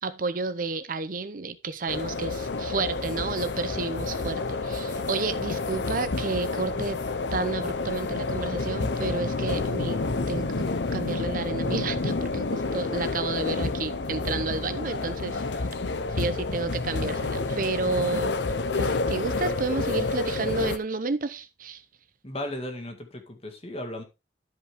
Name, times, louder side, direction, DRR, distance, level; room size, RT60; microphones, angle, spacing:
voice 1, 0.0-7.0 7.3-10.7 10.9-15.7 16.1-18.4 18.7-21.8, right 3 dB, 50° right, 0.7 m, -31 dB
sound 1, 1.9-20.8, left 3 dB, 85° left, 0.8 m, -29 dB
voice 2, 22.2-24.0, left 1 dB, 35° left, 2.0 m, -35 dB
12.5 x 5.5 x 3.5 m
head